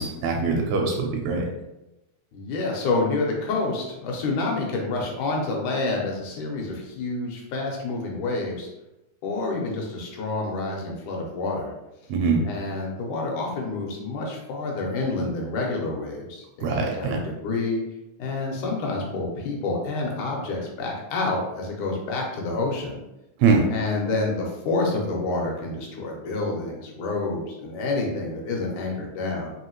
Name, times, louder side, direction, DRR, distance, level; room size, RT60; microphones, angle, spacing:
voice 1, 0.0-1.5 12.1-12.4 16.6-17.2 23.4-23.7, right 4 dB, 80° right, 1 dB, 1.7 m, -22 dB
voice 2, 2.3-8.7 9.2-11.7 12.4-17.8 18.2-22.9 23.7-29.5, left 3 dB, 85° left, -1 dB, 2.3 m, -28 dB
5.0 x 2.7 x 3.0 m, 0.94 s
omnidirectional pair, 3.4 m